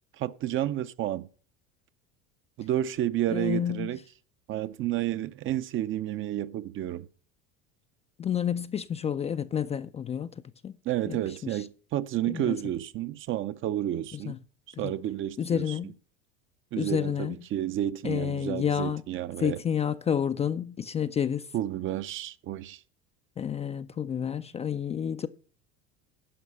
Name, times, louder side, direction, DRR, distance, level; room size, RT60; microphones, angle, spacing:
voice 1, 0.2-1.3 2.6-4.0 4.5-7.1 10.9-14.4 14.8-15.7 16.7-19.6 21.5-22.8, right 12 dB, 40° right, 0.6 m, -31 dB
voice 2, 3.3-4.0 8.2-10.3 10.6-10.7 11.1-11.6 12.3-12.6 14.1-14.4 14.8-14.9 15.4-16.0 16.8-17.4 18.0-19.0 19.4-21.5 23.4-25.3, left 8 dB, 20° left, 0.4 m, -30 dB
11.0 x 5.2 x 6.9 m
supercardioid pair, 100°, 31 cm